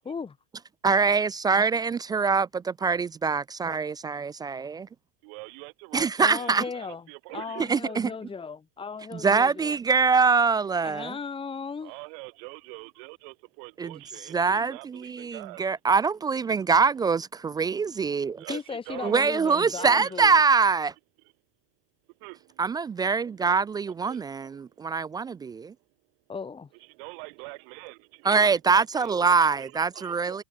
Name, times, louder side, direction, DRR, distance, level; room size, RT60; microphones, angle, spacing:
voice 1, 0.0-0.4 6.2-7.0 7.3-9.8 10.8-11.9 18.5-20.4 26.3-26.7, left 5 dB, 15° left, 2.5 m, -36 dB
voice 2, 0.8-4.9 5.9-6.6 7.7-8.1 9.1-11.1 13.8-13.9 14.3-18.4 19.0-20.9 22.6-25.7 28.3-30.4, right 5 dB, 15° right, 0.3 m, -24 dB
voice 3, 5.2-8.0 11.8-15.6 18.4-20.2 22.2-22.8 23.2-23.3 24.0-24.9 26.7-30.4, right 37 dB, 65° right, 4.8 m, -44 dB
supercardioid pair, 115°, 30 cm